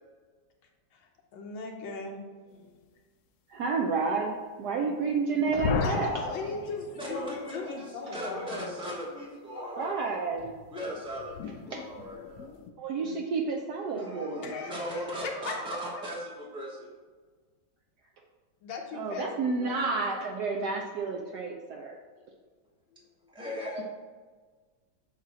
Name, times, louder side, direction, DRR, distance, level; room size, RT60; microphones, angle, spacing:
voice 1, 1.3-2.9 5.8-8.7 11.7-12.3 13.0-13.2 13.9-14.0 14.3-15.2 15.4-16.0 18.6-19.8 22.9-23.3, left 4 dB, 90° left, 1 dB, 1.7 m, -40 dB
voice 2, 3.5-6.1 9.7-10.5 11.7-11.8 12.8-14.5 18.9-22.0, right 4 dB, 70° right, 0 dB, 1.0 m, -30 dB
sound 1, 5.5-7.4 10.3-12.7, left 5 dB, 70° left, 1.0 m, -35 dB
voice 3, 5.9-6.6 7.0-10.2 10.7-12.4 14.0-16.9 23.3-23.8, equal, 5° right, -6 dB, 0.5 m, -38 dB
7.4 x 3.0 x 6.0 m, 1.4 s
omnidirectional pair, 2.1 m